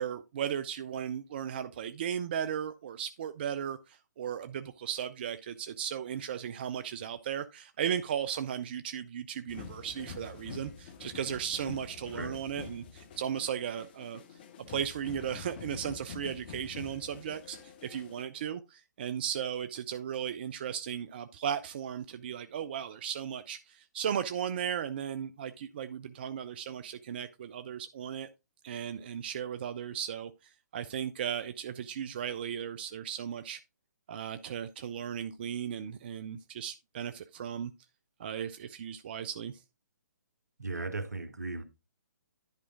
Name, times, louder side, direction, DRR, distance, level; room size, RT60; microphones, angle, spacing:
voice 1, 0.0-14.2 14.7-28.3 28.6-33.6 34.1-37.7 38.2-39.6, right 9 dB, 35° right, 0.4 m, -36 dB
sound 1, 9.5-18.2, left 6 dB, 35° left, 1.1 m, -46 dB
voice 2, 40.6-41.6, right 3 dB, 70° right, 1.3 m, -37 dB
10.5 x 4.8 x 3.7 m
figure-of-eight pair, 135°, 9 cm